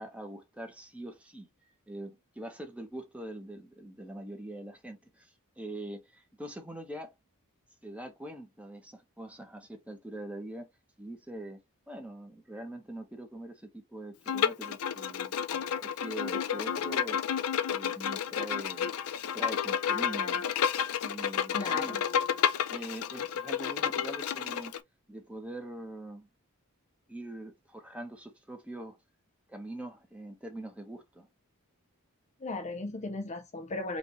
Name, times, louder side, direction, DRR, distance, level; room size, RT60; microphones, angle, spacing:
voice 1, 0.0-1.5 1.9-7.1 7.8-10.7 11.0-11.6 11.9-15.4 15.8-17.2 17.7-18.9 19.3-20.4 21.0-22.0 22.7-24.7 25.1-26.3 27.1-29.0 29.5-31.3, right 1 dB, 5° right, 1.2 m, -43 dB
Bowed string instrument, 14.3-24.8, left 8 dB, 75° left, 0.5 m, -31 dB
voice 2, 21.5-22.0 32.4-34.0, left 2 dB, 30° left, 0.6 m, -36 dB
5.2 x 2.8 x 3.0 m
head